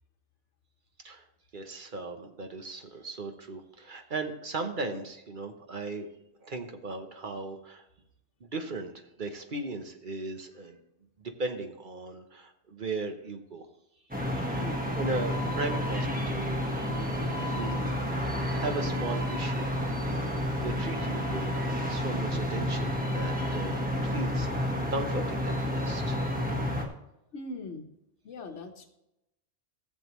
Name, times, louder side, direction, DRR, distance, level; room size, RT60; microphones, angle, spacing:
voice 1, 1.5-6.1 6.4-7.8 8.4-10.8 11.2-13.7 14.3-14.6 15.0-16.6 17.0-18.1 18.5-19.7 20.3-26.2, right 3 dB, 50° right, 5 dB, 1.1 m, -37 dB
sound 1, 14.1-26.9, equal, 10° right, 1.2 m, -30 dB
voice 2, 14.6-14.9 27.3-27.9 28.2-28.9, left 3 dB, 85° left, 5 dB, 1.4 m, -40 dB
sound 2, 16.6-22.2, right 4 dB, 80° right, 1.3 m, -46 dB
14.5 x 7.5 x 3.0 m, 0.87 s
omnidirectional pair, 1.2 m